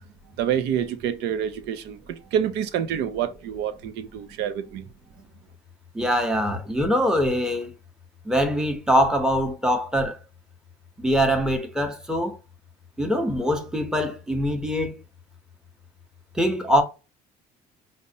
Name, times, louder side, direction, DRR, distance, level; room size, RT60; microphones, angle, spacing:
voice 1, 0.4-4.9, right 9 dB, 90° right, 0.6 m, -27 dB
voice 2, 5.9-7.7 8.2-10.2 11.0-12.4 13.0-14.9 16.3-16.8, equal, 5° right, 0.8 m, -23 dB
5.3 x 2.1 x 2.7 m
cardioid pair, 110°, 17 cm